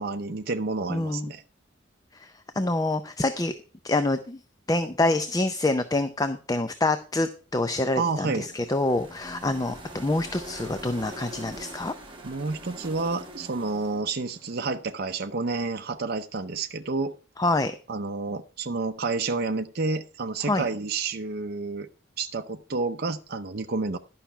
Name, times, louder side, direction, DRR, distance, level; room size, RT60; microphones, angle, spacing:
voice 1, 0.0-1.4 7.9-8.5 12.2-17.1 17.9-21.9 22.2-24.0, right 3 dB, 50° right, 6 dB, 0.6 m, -29 dB
voice 2, 0.9-1.3 2.1-3.5 3.8-4.4 4.7-11.9 17.4-17.7 20.4-20.6, left 2 dB, 20° left, 10 dB, 0.5 m, -26 dB
sound 1, 7.6-15.6, right 1 dB, 25° right, 1.5 m, -44 dB
11.5 x 5.7 x 5.6 m, 0.36 s
head